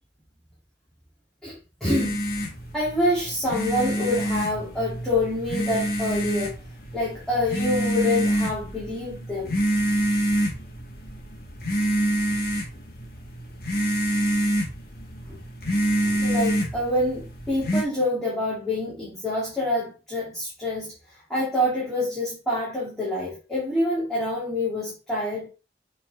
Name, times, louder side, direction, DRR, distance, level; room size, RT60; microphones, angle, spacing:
voice 1, 1.4-2.2 2.7-6.5 6.9-9.5 15.3-15.4 16.0-20.9 21.3-25.5, left 1 dB, 5° left, 2.7 m, -26 dB
sound 1, 1.8-17.8, equal, 55° left, 1.7 m, -27 dB
7.5 x 4.1 x 3.6 m
head